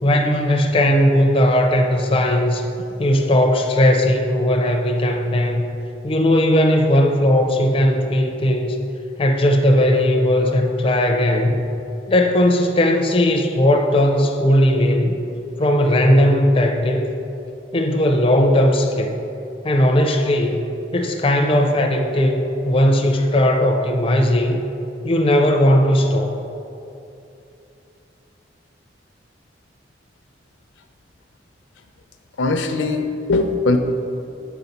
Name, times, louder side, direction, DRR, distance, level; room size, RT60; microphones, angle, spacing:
voice 1, 0.0-2.7 3.0-5.7 6.0-8.8 9.2-11.6 12.1-15.3 15.6-17.1 17.7-19.2 19.6-20.7 20.9-24.6 25.0-26.4, left 1 dB, 30° left, 3 dB, 0.4 m, -17 dB
voice 2, 32.4-33.8, left 3 dB, 85° left, 6 dB, 0.5 m, -20 dB
7.0 x 4.0 x 5.7 m, 2.7 s
head